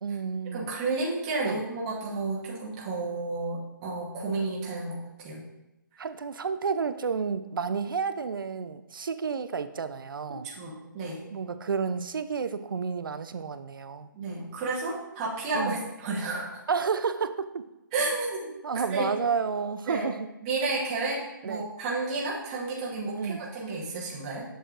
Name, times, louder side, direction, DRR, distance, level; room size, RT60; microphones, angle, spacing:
voice 1, 0.0-0.7 1.4-1.6 6.0-10.5 11.3-14.1 15.5-15.8 16.7-17.6 18.6-20.3 21.4-21.7 23.2-23.4, right 5 dB, 75° right, 11 dB, 0.5 m, -31 dB
voice 2, 0.5-5.0 5.2-5.4 10.4-11.2 14.1-16.6 17.9-18.5 18.9-19.1 19.9-20.1 20.4-24.4, right 3 dB, 20° right, -6 dB, 1.1 m, -31 dB
7.8 x 6.4 x 2.5 m, 0.97 s
hypercardioid pair, 170°, 11 cm